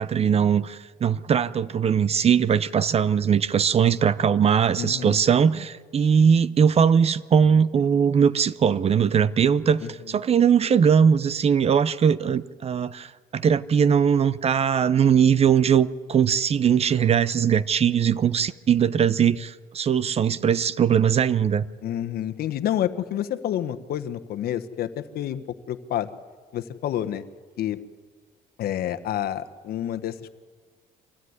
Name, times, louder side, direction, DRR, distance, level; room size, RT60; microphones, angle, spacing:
voice 1, 0.0-21.6, right 7 dB, 35° right, 17 dB, 0.7 m, -20 dB
voice 2, 4.8-5.2 9.8-9.9 21.8-26.1 26.5-27.2 27.6-27.8 28.6-30.3, left 11 dB, 65° left, 10 dB, 1.3 m, -29 dB
25.0 x 16.0 x 9.6 m, 1.5 s
cardioid pair, 110°, 17 cm